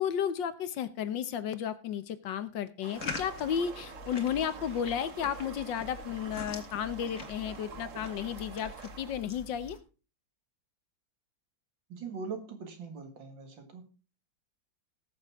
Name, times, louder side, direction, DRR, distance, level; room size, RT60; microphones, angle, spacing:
voice 1, 0.0-9.8, left 8 dB, 70° left, 13 dB, 1.5 m, -33 dB
sound 1, 2.8-9.2, right 7 dB, 50° right, 1.0 m, -47 dB
sound 2, 2.9-9.8, left 4 dB, 40° left, 1.9 m, -44 dB
voice 2, 11.9-13.9, right 5 dB, 65° right, 6 dB, 2.6 m, -41 dB
19.5 x 6.9 x 3.5 m, 0.35 s
omnidirectional pair, 2.2 m